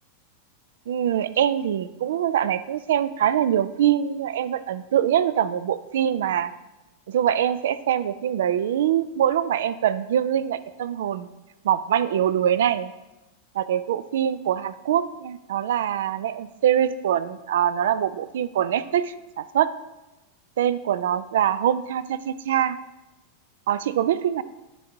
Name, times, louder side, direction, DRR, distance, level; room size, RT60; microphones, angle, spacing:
voice 1, 0.9-6.5 7.1-11.3 11.6-12.9 13.5-19.7 20.6-22.8 23.7-24.4, right 10 dB, 60° right, 15 dB, 0.3 m, -23 dB
13.0 x 4.7 x 2.7 m, 1.0 s
figure-of-eight pair, 90°, 0 cm